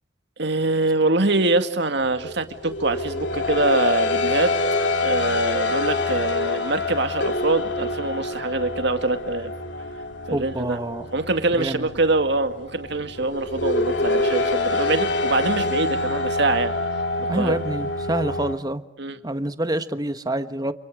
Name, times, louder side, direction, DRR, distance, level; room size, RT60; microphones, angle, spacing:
voice 1, 0.4-4.5 5.0-9.5 10.3-10.8 11.1-16.7 17.2-17.5 19.0-19.2, right 2 dB, 65° right, 8 dB, 2.2 m, -24 dB
sound 1, 2.1-18.6, left 2 dB, 70° left, 2.9 m, -26 dB
voice 2, 10.3-11.1 11.6-11.9 17.3-18.8 19.2-20.7, right 1 dB, 20° right, 10 dB, 1.3 m, -27 dB
29.5 x 28.0 x 4.9 m, 0.77 s
head